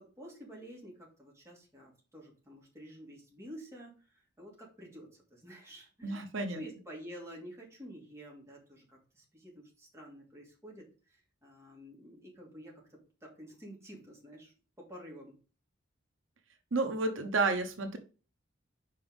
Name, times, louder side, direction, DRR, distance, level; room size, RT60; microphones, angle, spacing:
voice 1, 0.0-15.4, equal, 15° right, -2 dB, 2.6 m, -50 dB
voice 2, 6.0-6.6 16.7-18.0, right 3 dB, 85° right, 6 dB, 1.0 m, -31 dB
5.5 x 5.2 x 5.3 m, 0.36 s
head